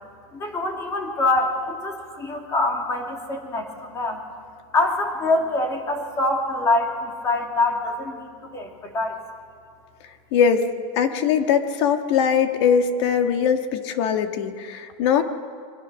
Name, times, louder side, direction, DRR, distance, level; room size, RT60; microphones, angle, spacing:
voice 1, 0.3-4.2 4.7-9.2, left 2 dB, 20° left, 2 dB, 2.7 m, -25 dB
voice 2, 10.3-10.7 10.9-15.2, left 7 dB, 55° left, 6 dB, 1.7 m, -21 dB
28.5 x 23.5 x 6.4 m, 2.1 s
supercardioid pair, 170°, 17 cm